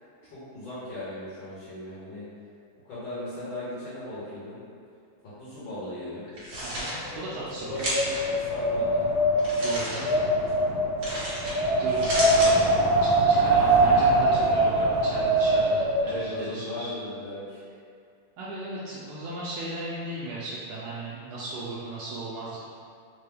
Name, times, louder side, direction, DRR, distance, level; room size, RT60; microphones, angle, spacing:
voice 1, 0.2-2.2 2.9-4.6 5.4-6.3 7.1-7.2 7.6-9.0 9.8-10.0 10.3-10.9 11.7-13.0 13.8-14.1 16.0-17.6, left 1 dB, 65° left, -12 dB, 1.9 m, -38 dB
sound 1, 6.3-6.9 7.8-8.2 9.4-10.0 11.0-11.5 11.9-12.5, equal, 45° right, 1.1 m, -31 dB
voice 2, 6.6-7.9 9.6-10.4 11.8-12.1 12.3-12.7 13.0-16.9 18.4-22.7, right 2 dB, 80° right, -7 dB, 1.4 m, -36 dB
Wind, 6.9-16.1, right 1 dB, 50° left, 1.4 m, -23 dB
4.6 x 2.2 x 3.4 m, 2.3 s
omnidirectional pair, 2.4 m